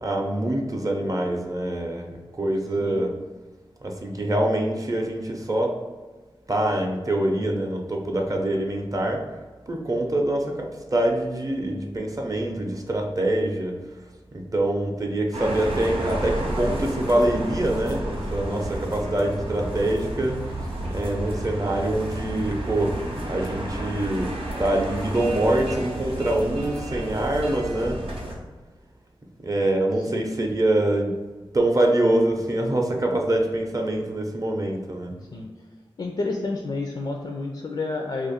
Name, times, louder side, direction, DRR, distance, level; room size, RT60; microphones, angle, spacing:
voice 1, 0.0-3.1 3.8-5.8 6.5-9.2 9.7-13.8 14.3-20.6 20.9-24.3 24.6-28.0 29.4-31.1 31.5-35.1, right 1 dB, 40° right, 2 dB, 0.6 m, -25 dB
sound 1, 15.3-28.4, right 1 dB, 80° right, 0.7 m, -31 dB
voice 2, 30.1-30.4 35.3-35.5 36.0-38.3, left 3 dB, 55° left, 2 dB, 0.4 m, -30 dB
2.5 x 2.4 x 4.1 m, 1.3 s
cardioid pair, 55°, 10 cm